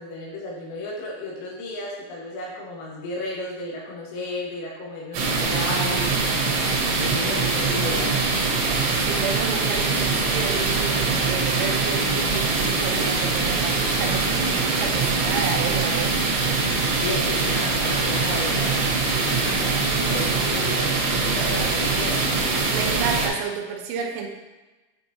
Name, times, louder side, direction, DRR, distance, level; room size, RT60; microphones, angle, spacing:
voice 1, 0.0-6.1 6.9-8.1 17.0-18.9 19.2-22.5, left 2 dB, 80° left, -4 dB, 4.1 m, -33 dB
sound 1, 5.1-23.3, right 3 dB, 70° right, 2.9 m, -23 dB
voice 2, 9.0-16.2 22.7-24.3, right 6 dB, 85° right, 3 dB, 3.3 m, -31 dB
9.7 x 4.4 x 2.7 m, 1.1 s
omnidirectional pair, 6.0 m